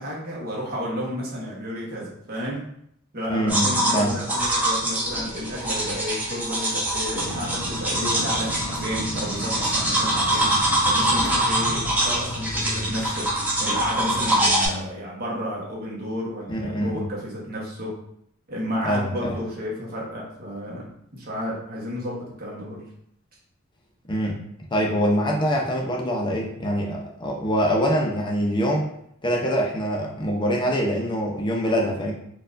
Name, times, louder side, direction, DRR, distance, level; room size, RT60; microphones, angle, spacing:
voice 1, 0.0-2.6 3.1-18.0 18.5-22.9, equal, 45° right, -4 dB, 1.1 m, -32 dB
voice 2, 3.3-4.2 16.5-17.0 18.8-19.4 24.1-24.4 24.7-28.8 29.2-32.1, equal, 20° left, -1 dB, 0.6 m, -24 dB
sound 1, 3.5-14.7, right 1 dB, 10° right, 0.8 m, -24 dB
sound 2, 7.2-14.8, left 1 dB, 60° left, 0.7 m, -35 dB
4.4 x 2.3 x 2.5 m, 0.71 s
head